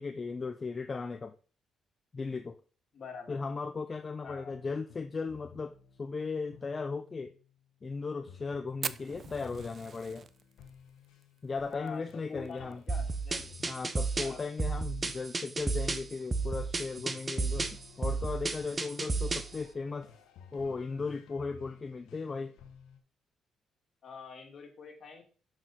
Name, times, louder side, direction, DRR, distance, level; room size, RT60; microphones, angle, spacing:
voice 1, 0.0-1.3 2.1-2.6 3.3-7.3 7.8-10.3 11.4-12.8 13.7-20.1 20.5-22.6, left 4 dB, 35° left, 0.5 m, -37 dB
voice 2, 2.9-3.4 4.2-4.5 11.7-12.0 12.3-13.5 14.2-14.5 24.0-25.2, left 5 dB, 55° left, 2.2 m, -45 dB
sound 1, 4.3-7.4 8.3-23.0, left 7 dB, 90° left, 1.2 m, -55 dB
Fire, 8.8-13.3 13.6-13.7 13.9-14.0 14.4-14.8 15.3-15.4 16.5-16.6, right 6 dB, 50° right, 0.4 m, -42 dB
sound 2, 12.9-19.6, right 3 dB, 25° right, 0.9 m, -33 dB
6.3 x 6.2 x 4.0 m
cardioid pair, 90°, 0 cm